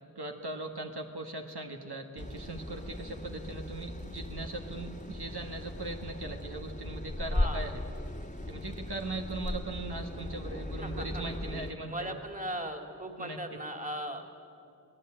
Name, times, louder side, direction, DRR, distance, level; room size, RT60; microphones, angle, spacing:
voice 1, 0.1-7.8 8.5-12.2 13.2-13.4, right 2 dB, 70° right, 2 dB, 1.8 m, -39 dB
sound 1, 2.2-11.7, left 1 dB, 20° left, 1.6 m, -37 dB
voice 2, 7.3-7.7 10.8-11.2 11.8-14.4, equal, 20° right, 4 dB, 2.6 m, -38 dB
26.0 x 18.0 x 8.8 m, 2.5 s
wide cardioid pair, 55°, 40 cm